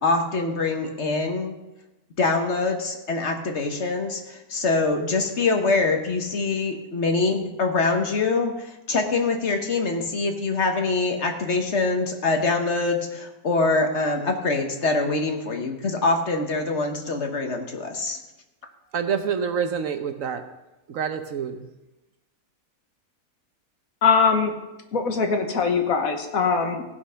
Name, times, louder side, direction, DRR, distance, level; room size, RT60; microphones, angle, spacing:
voice 1, 0.0-1.5 2.2-18.2, left 3 dB, 50° left, 4 dB, 1.4 m, -24 dB
voice 2, 18.9-20.4 20.9-21.7, right 7 dB, 65° right, 8 dB, 1.1 m, -27 dB
voice 3, 24.0-24.5 24.9-26.8, left 5 dB, 65° left, 5 dB, 1.5 m, -21 dB
16.0 x 5.9 x 5.6 m, 1.0 s
omnidirectional pair, 1.6 m